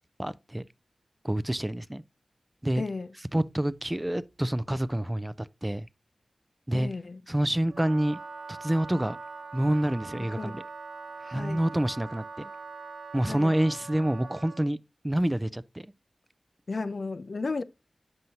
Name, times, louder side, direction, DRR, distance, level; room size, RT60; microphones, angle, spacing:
voice 1, 0.2-0.6 1.2-2.0 2.6-2.8 3.3-5.9 6.7-6.9 7.3-8.2 8.5-9.2 9.5-10.6 11.3-12.5 13.1-14.8 15.0-15.9, right 1 dB, 15° right, 0.4 m, -27 dB
voice 2, 2.8-3.1 6.7-7.2 10.1-10.6 11.2-11.6 13.3-13.5 16.7-17.6, left 3 dB, 60° left, 0.4 m, -34 dB
Wind instrument woodwind instrument, 7.7-14.7, right 4 dB, 75° right, 0.5 m, -42 dB
7.7 x 5.4 x 2.8 m
wide cardioid pair, 55°, 0 cm